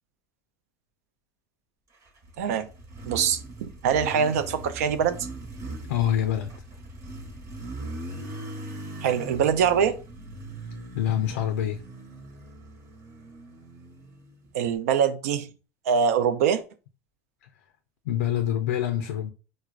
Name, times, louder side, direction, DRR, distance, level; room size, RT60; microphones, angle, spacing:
Motorcycle, 2.1-14.7, right 1 dB, 40° right, 1.0 m, -40 dB
voice 1, 2.4-2.7 3.1-5.3 9.0-10.0 14.5-15.5 15.9-16.6, right 7 dB, 85° right, 0.4 m, -23 dB
voice 2, 5.9-6.5 10.9-11.8 18.1-19.3, left 11 dB, 90° left, 0.3 m, -26 dB
4.6 x 2.1 x 2.4 m
supercardioid pair, 90°, 8 cm